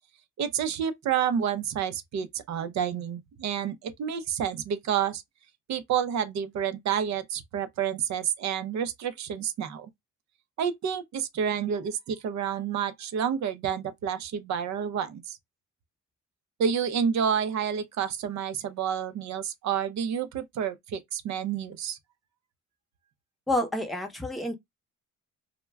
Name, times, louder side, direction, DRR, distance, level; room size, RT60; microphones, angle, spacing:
voice 1, 0.4-5.2 5.7-9.9 10.6-15.4 16.6-22.0, right 8 dB, 65° right, 0.6 m, -29 dB
voice 2, 23.5-24.5, left 1 dB, ahead, 0.7 m, -28 dB
2.2 x 2.1 x 3.2 m
cardioid pair, 90°, 30 cm